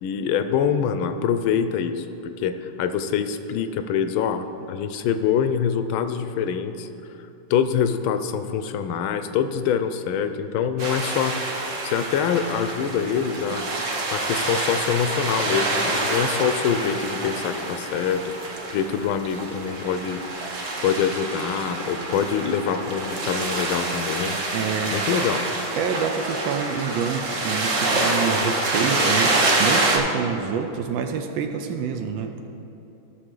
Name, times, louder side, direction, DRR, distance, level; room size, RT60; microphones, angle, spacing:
voice 1, 0.0-6.9 7.5-11.4 11.8-20.5 20.8-24.4 24.9-25.4, left 7 dB, 85° left, 9 dB, 1.4 m, -25 dB
sound 1, 10.8-30.0, right 2 dB, 50° right, 1.1 m, -26 dB
voice 2, 24.5-25.0 25.7-32.5, right 6 dB, 75° right, 6 dB, 1.3 m, -27 dB
14.5 x 6.4 x 3.8 m, 2.9 s
omnidirectional pair, 2.2 m